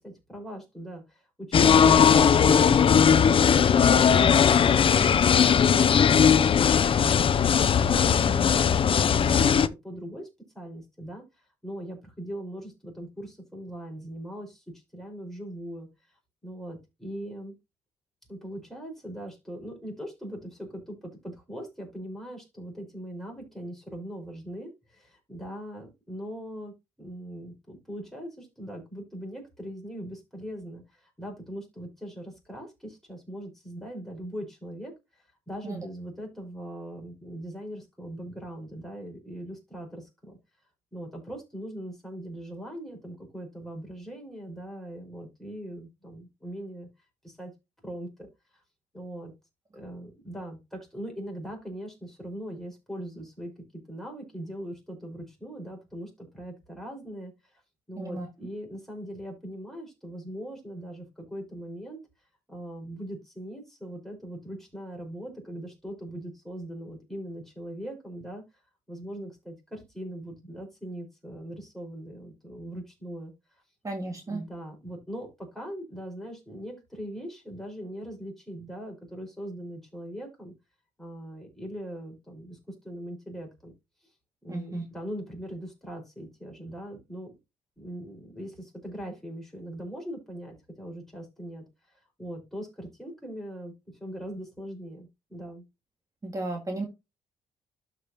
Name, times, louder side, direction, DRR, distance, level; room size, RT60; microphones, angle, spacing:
voice 1, 0.0-10.3 10.5-11.2 11.6-15.9 16.4-17.5 18.3-40.4 40.9-46.9 47.2-47.5 47.8-48.3 48.5-48.6 48.9-49.3 49.7-57.6 57.9-62.0 62.5-68.4 68.9-73.6 74.3-80.5 81.0-83.7 84.0-84.1 84.4-87.3 87.8-93.7 94.0-95.6, equal, ahead, 4.9 m, -40 dB
sound 1, 1.5-9.7, left 7 dB, 40° left, 0.5 m, -19 dB
voice 2, 73.8-74.4 84.5-84.8 96.2-96.9, right 2 dB, 25° right, 2.0 m, -34 dB
12.5 x 5.2 x 2.9 m
cardioid pair, 120°, 14 cm